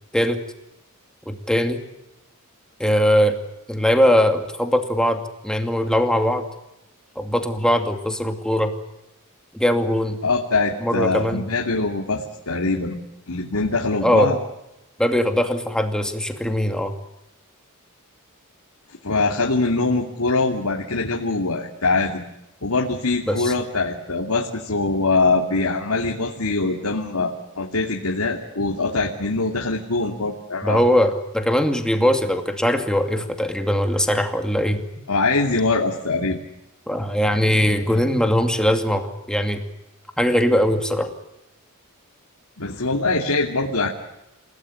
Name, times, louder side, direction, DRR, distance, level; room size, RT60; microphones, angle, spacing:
voice 1, 1.3-1.8 2.8-3.4 3.7-6.5 7.2-8.7 9.5-10.2 10.8-11.4 14.0-14.4 15.0-16.9 23.3-23.5 30.6-34.8 36.9-39.6 40.2-41.1, equal, 5° left, 5 dB, 2.4 m, -20 dB
voice 2, 10.2-13.0 13.3-14.4 19.0-22.2 22.6-30.9 35.1-36.4 42.6-43.9, left 3 dB, 85° left, 0 dB, 2.8 m, -23 dB
29.5 x 17.5 x 9.9 m, 0.92 s
head